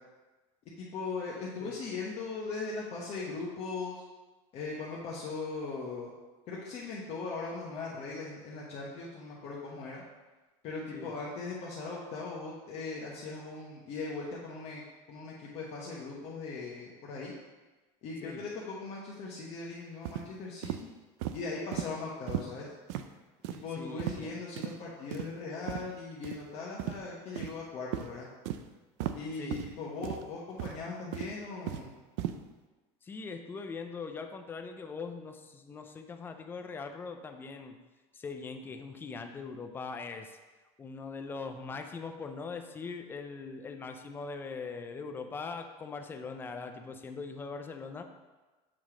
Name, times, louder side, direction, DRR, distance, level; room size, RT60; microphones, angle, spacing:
voice 1, 0.8-3.9 4.5-6.1 6.5-10.0 10.6-14.8 15.1-17.3 18.0-20.9 21.3-22.7 23.6-28.3 29.1-31.9, left 4 dB, 45° left, -5 dB, 1.0 m, -39 dB
sound 1, 20.0-20.3 20.6-20.8 21.2-21.4 21.7-21.9 22.3-22.5 22.9-23.0 23.4-23.6 24.0-24.2 24.6-24.7 25.1-25.3 25.7-25.8 26.2-26.4 26.8-27.0 27.4-27.6 27.9-28.1 28.5-28.6 29.0-29.2 29.5-29.7 30.0-30.2 30.6-30.8 31.1-31.9 32.2-32.4, right 12 dB, 80° right, 0.4 m, -35 dB
voice 2, 23.8-24.4 29.4-29.6 33.0-37.8 38.1-40.4 40.8-48.0, left 4 dB, 15° left, 5 dB, 0.4 m, -41 dB
7.5 x 3.1 x 4.9 m, 1.2 s
cardioid pair, 155°, 15 cm